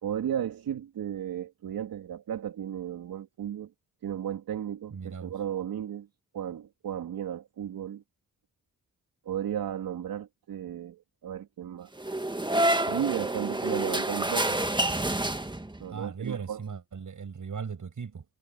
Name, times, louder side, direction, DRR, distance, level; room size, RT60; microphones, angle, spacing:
voice 1, 0.0-3.7 4.0-6.1 6.3-8.0 9.3-11.9 12.9-14.6 15.8-16.6, right 10 dB, 80° right, 3.6 m, -34 dB
voice 2, 4.9-5.3 15.9-18.3, right 6 dB, 60° right, 6.6 m, -38 dB
sound 1, 12.0-15.9, right 1 dB, 15° right, 1.8 m, -28 dB
supercardioid pair, 45°, 35 cm